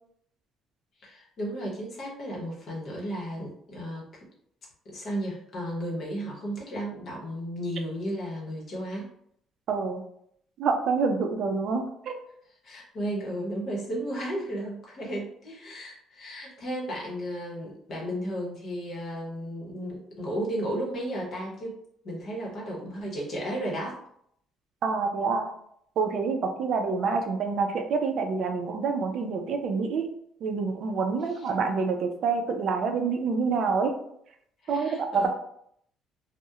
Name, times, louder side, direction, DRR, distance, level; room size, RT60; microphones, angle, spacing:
voice 1, 1.0-4.1 4.8-9.1 12.6-21.8 22.0-24.0 31.3-31.5 34.6-35.3, equal, 45° left, -3 dB, 0.8 m, -34 dB
voice 2, 9.7-10.0 10.6-12.2 24.8-25.5 26.0-30.1 30.4-33.9 34.7-35.3, right 4 dB, 55° right, 5 dB, 0.4 m, -27 dB
2.8 x 2.0 x 2.3 m, 0.70 s
cardioid pair, 140°, 0 cm